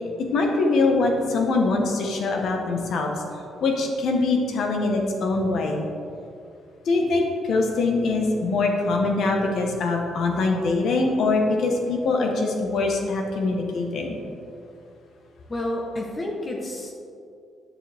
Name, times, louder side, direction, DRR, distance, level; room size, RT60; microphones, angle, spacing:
voice 1, 0.3-3.1 3.6-5.8 6.9-14.2, left 3 dB, 70° left, 2 dB, 1.3 m, -23 dB
voice 2, 15.5-16.9, left 1 dB, 30° left, -1 dB, 1.2 m, -30 dB
9.2 x 7.1 x 3.6 m, 2.5 s
cardioid pair, 90°, 0 cm